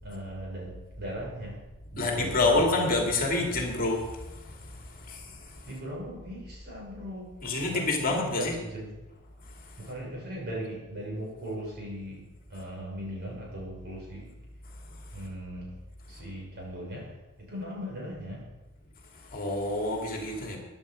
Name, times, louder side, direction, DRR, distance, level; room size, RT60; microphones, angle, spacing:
voice 1, 0.0-1.6 1.9-3.1 5.7-8.9 9.8-12.2 12.5-14.3 15.1-15.7 16.1-18.5, equal, 50° right, -3 dB, 5.9 m, -38 dB
voice 2, 2.0-4.0 5.1-5.2 7.4-8.5 19.3-20.6, left 2 dB, 40° left, 1 dB, 2.5 m, -27 dB
15.5 x 10.5 x 5.1 m, 1.1 s
head